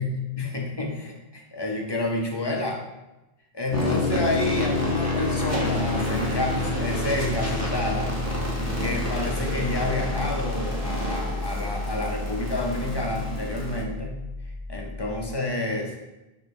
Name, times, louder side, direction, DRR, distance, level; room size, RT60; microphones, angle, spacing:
voice 1, 0.0-2.8 3.5-8.1 8.8-14.2 14.7-15.9, left 2 dB, 30° left, 0 dB, 0.5 m, -29 dB
sound 1, 3.7-15.3, left 3 dB, 85° left, 1.0 m, -30 dB
sound 2, 3.7-13.8, right 1 dB, 15° right, 0.8 m, -32 dB
4.7 x 2.2 x 4.6 m, 0.99 s
omnidirectional pair, 1.0 m